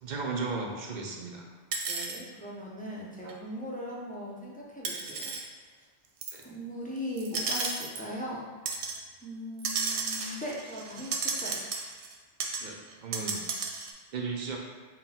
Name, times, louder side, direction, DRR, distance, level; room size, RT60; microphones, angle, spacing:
voice 1, 0.0-1.5 3.2-3.3 6.3-6.4 12.6-13.4 14.1-14.6, right 4 dB, 55° right, 1 dB, 0.6 m, -35 dB
sound 1, 1.7-2.2 3.3-3.4 4.8-5.4 6.2-6.4 7.2-8.0 8.7-9.0 9.6-12.2 12.4-12.6 12.9-13.9, right 4 dB, 80° right, 0.8 m, -33 dB
voice 2, 1.9-5.3 6.4-8.5 9.2-11.7, equal, 10° left, -6 dB, 0.4 m, -39 dB
3.9 x 2.2 x 4.1 m, 1.4 s
omnidirectional pair, 1.1 m